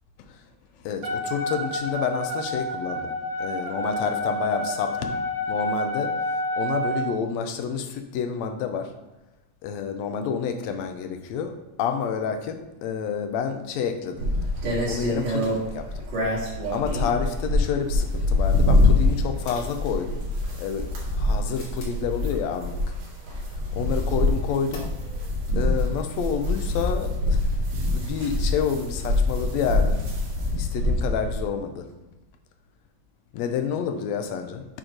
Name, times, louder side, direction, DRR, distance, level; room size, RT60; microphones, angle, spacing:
voice 1, 0.8-5.2 5.5-6.2 6.6-8.9 9.6-11.5 11.8-14.3 14.8-16.1 16.7-20.3 20.6-20.9 21.2-22.8 23.7-24.9 25.6-27.5 27.8-30.0 30.6-31.9 33.3-34.7, left 7 dB, 75° left, 6 dB, 1.7 m, -29 dB
Wind instrument woodwind instrument, 1.0-7.1, equal, 70° right, 2.7 m, -29 dB
sound 1, 14.2-31.4, left 2 dB, 90° right, 3.4 m, -25 dB
sound 2, 19.5-20.4 21.1-22.1 24.7-25.3 25.6-25.7 26.0-26.1, right 2 dB, 40° left, 1.6 m, -32 dB
8.7 x 3.1 x 5.0 m, 1.0 s
omnidirectional pair, 3.6 m